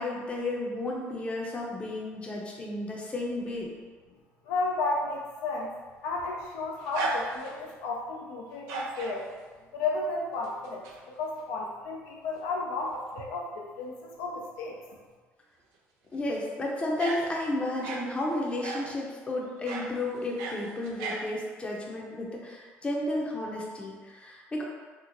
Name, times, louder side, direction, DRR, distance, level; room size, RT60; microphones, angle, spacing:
voice 1, 0.0-3.7 16.1-24.6, left 1 dB, 20° left, -2 dB, 0.6 m, -32 dB
voice 2, 4.5-5.7 6.0-9.3 9.7-10.8 11.2-14.8, left 3 dB, 90° left, -1 dB, 0.5 m, -33 dB
sound 1, 5.9-7.7 8.5-9.2 10.4-11.0 11.4-11.5 12.9-13.0 13.2-13.3 16.2-16.4 17.0-18.1 18.6-19.0 19.7-19.9 20.2-21.2, right 2 dB, 85° right, 0.5 m, -35 dB
3.0 x 2.0 x 3.8 m, 1.4 s
cardioid pair, 105°, 5 cm